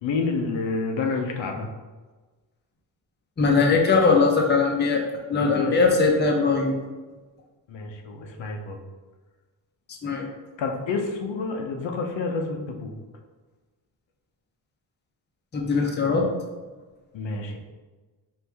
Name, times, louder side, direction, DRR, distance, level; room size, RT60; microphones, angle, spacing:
voice 1, 0.0-1.7 5.3-5.8 7.7-8.8 10.6-12.9 17.1-17.6, left 4 dB, 85° left, 2 dB, 0.8 m, -29 dB
voice 2, 3.4-5.0 5.3-6.8 10.0-10.3 15.5-16.3, left 4 dB, 25° left, 0 dB, 0.6 m, -20 dB
4.6 x 2.7 x 3.4 m, 1.3 s
cardioid pair, 115°, 44 cm